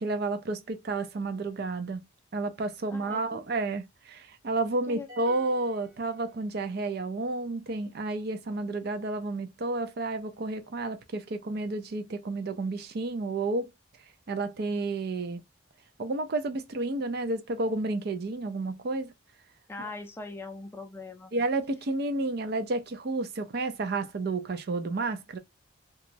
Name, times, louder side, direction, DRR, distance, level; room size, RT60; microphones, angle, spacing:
voice 1, 0.0-2.0 2.3-13.7 14.3-15.4 16.0-19.1 21.3-25.4, right 2 dB, 50° right, 0.4 m, -31 dB
voice 2, 2.9-3.4 4.9-5.1 19.7-21.3, left 3 dB, 10° left, 0.5 m, -41 dB
sound 1, 5.1-6.8, left 1 dB, 35° right, 1.1 m, -51 dB
2.9 x 2.3 x 2.5 m
head